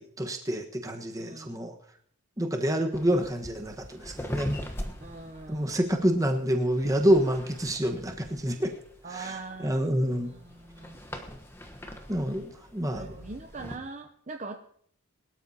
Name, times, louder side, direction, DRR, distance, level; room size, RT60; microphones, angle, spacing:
voice 1, 0.0-1.7 2.4-4.5 5.5-8.7 9.1-10.3 12.1-13.1, equal, 15° right, 3 dB, 1.3 m, -27 dB
voice 2, 1.2-1.6 5.0-5.8 9.0-9.8 10.1-11.0 12.9-14.6, right 3 dB, 35° right, 5 dB, 0.7 m, -42 dB
sound 1, 2.9-13.8, equal, 10° left, 1.1 m, -41 dB
23.0 x 12.5 x 2.9 m, 0.62 s
head